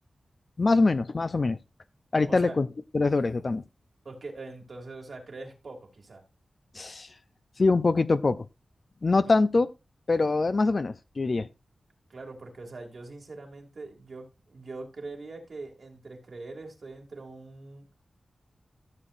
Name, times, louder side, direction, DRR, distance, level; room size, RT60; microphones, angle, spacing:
voice 1, 0.6-1.6 2.1-2.7 2.9-3.6 6.7-7.1 7.6-8.5 9.0-9.7 10.1-11.5, left 3 dB, 45° left, 0.5 m, -24 dB
voice 2, 2.3-2.6 4.0-6.2 9.3-9.4 12.1-17.9, right 3 dB, 60° right, 2.4 m, -42 dB
14.0 x 7.1 x 2.5 m
wide cardioid pair, 80°, 0 cm